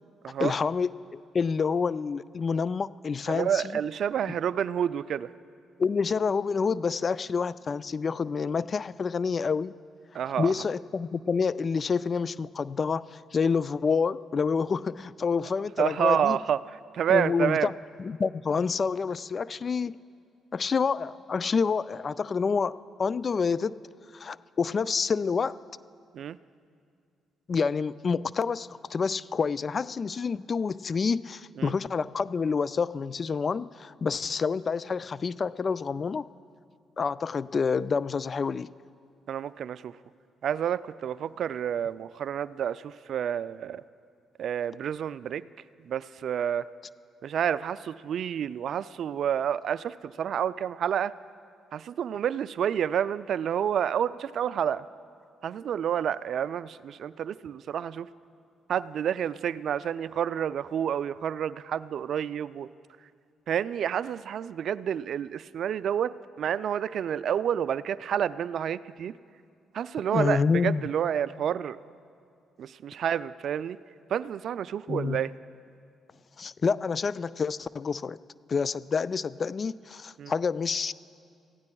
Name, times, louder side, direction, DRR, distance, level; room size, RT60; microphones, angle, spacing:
voice 1, 0.4-3.6 5.8-9.7 10.4-16.4 17.1-17.7 18.0-20.0 20.5-23.8 24.1-25.6 27.5-36.3 37.0-38.7 70.1-70.8 74.9-75.2 76.4-78.2 78.5-80.9, left 5 dB, 45° left, 18 dB, 0.3 m, -28 dB
voice 2, 3.3-5.3 10.1-10.5 15.8-16.6 16.9-17.7 26.1-26.4 31.6-31.7 39.3-40.0 40.4-43.8 44.4-45.4 45.8-46.7 47.2-51.1 51.7-54.9 55.4-58.1 58.7-62.7 63.5-69.2 69.7-71.8 72.6-73.8 74.1-75.3 80.2-80.3, right 9 dB, 65° right, 17 dB, 0.3 m, -29 dB
27.5 x 16.0 x 2.3 m, 2.3 s
hypercardioid pair, 50°, 0 cm